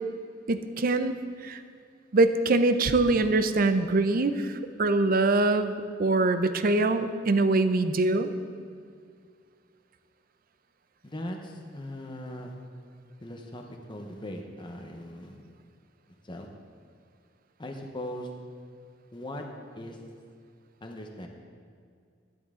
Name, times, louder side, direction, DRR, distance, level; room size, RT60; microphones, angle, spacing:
voice 1, 0.5-1.2 1.4-1.6 2.1-4.5 4.8-5.7 6.0-8.3, right 2 dB, 50° right, 10 dB, 0.6 m, -23 dB
voice 2, 11.0-12.6 13.2-15.4 16.2-16.5 17.6-18.3 19.1-19.4 19.8-20.0 20.8-21.3, left 1 dB, 25° left, 2 dB, 0.9 m, -39 dB
13.0 x 11.5 x 3.7 m, 2.2 s
head